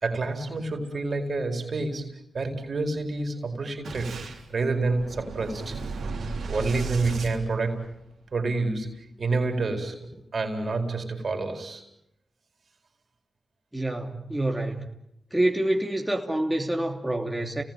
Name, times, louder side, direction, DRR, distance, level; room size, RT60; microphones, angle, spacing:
voice 1, 0.0-5.8 6.5-7.9 8.3-11.8, right 3 dB, 60° right, 5 dB, 4.6 m, -28 dB
Boom, 3.8-8.2, right 3 dB, 80° right, 3.5 m, -35 dB
voice 2, 13.7-14.9 15.3-17.6, right 1 dB, 10° right, 2 dB, 3.1 m, -27 dB
29.5 x 19.0 x 9.2 m, 0.81 s
supercardioid pair, 40°, 0 cm